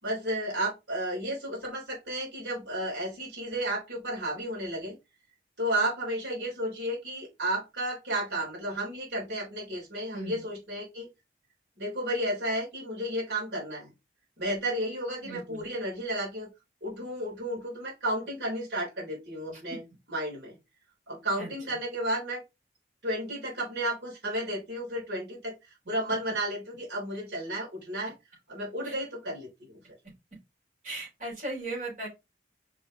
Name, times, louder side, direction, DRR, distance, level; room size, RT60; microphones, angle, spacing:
voice 1, 0.0-5.0 5.6-11.1 11.8-13.9 14.4-16.5 16.8-19.8 20.1-20.6 21.1-22.4 23.0-25.5 25.9-28.1 28.5-29.8, right 1 dB, 80° right, -3 dB, 3.7 m, -32 dB
voice 2, 15.2-15.6 19.5-19.6 21.4-21.5 28.8-28.9 30.8-32.1, right 2 dB, 45° right, -3 dB, 4.4 m, -37 dB
5.5 x 5.3 x 3.7 m, 0.23 s
head